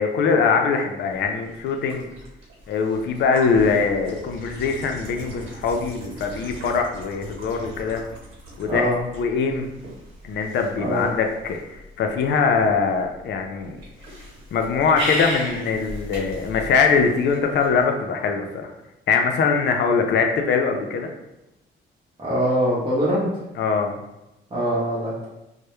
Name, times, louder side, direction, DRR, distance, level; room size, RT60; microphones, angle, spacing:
voice 1, 0.0-2.1 2.7-8.0 8.6-9.7 10.2-13.8 14.5-18.7 19.1-21.1 23.6-23.9, left 5 dB, 65° left, 4 dB, 0.4 m, -22 dB
sound 1, 1.1-17.8, right 1 dB, 85° right, 1.0 m, -38 dB
voice 2, 8.7-9.0 10.8-11.1 22.2-23.3 24.5-25.3, equal, 25° right, -8 dB, 0.7 m, -23 dB
2.1 x 2.0 x 2.9 m, 0.93 s
cardioid pair, 90°, 20 cm